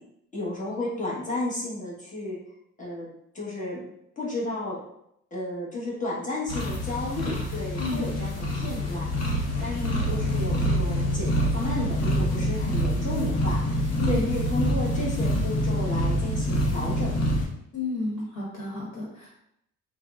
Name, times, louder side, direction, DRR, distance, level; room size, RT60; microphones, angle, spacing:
voice 1, 0.3-2.4 2.8-3.1 3.3-3.9 4.2-4.8 5.3-17.1, left 2 dB, 25° left, -6 dB, 1.1 m, -33 dB
sound 1, 6.5-17.4, equal, 55° left, 0.8 m, -26 dB
voice 2, 7.8-8.1 9.7-10.3 14.0-14.3 17.7-19.3, left 3 dB, 70° left, -5 dB, 1.1 m, -33 dB
3.4 x 2.1 x 2.3 m, 0.77 s
cardioid pair, 90°, 30 cm